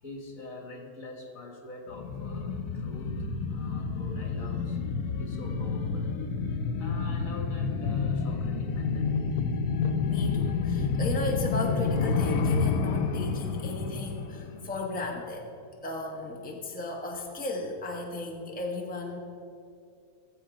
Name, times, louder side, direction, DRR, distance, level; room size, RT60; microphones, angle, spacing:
voice 1, 0.0-4.8 5.2-6.2 6.8-9.2, left 2 dB, 65° left, 1 dB, 2.1 m, -44 dB
sound 1, 1.9-15.2 15.5-15.6, left 5 dB, 85° left, 1.2 m, -29 dB
voice 2, 10.1-15.5 15.8-19.2, left 2 dB, 5° left, 0 dB, 1.1 m, -35 dB
16.5 x 7.7 x 5.1 m, 2.5 s
omnidirectional pair, 1.6 m